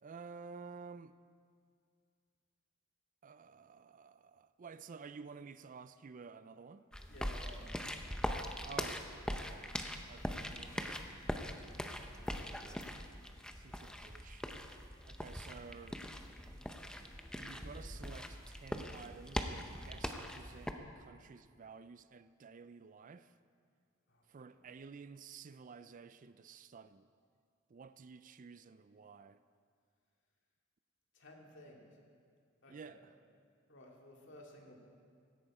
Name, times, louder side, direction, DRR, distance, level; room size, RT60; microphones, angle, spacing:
voice 1, 0.0-1.1 3.2-6.9 8.6-11.0 12.1-12.9 13.6-14.5 15.1-16.0 17.4-23.3 24.3-27.1 27.7-29.4 32.7-33.1, right 5 dB, 40° right, 0.4 m, -52 dB
sound 1, 6.9-20.7, equal, 5° left, 0.7 m, -42 dB
voice 2, 7.1-7.8 24.1-24.7 31.1-31.8 32.6-33.0 33.7-34.8, left 1 dB, 60° left, 2.4 m, -56 dB
16.5 x 13.0 x 4.9 m
head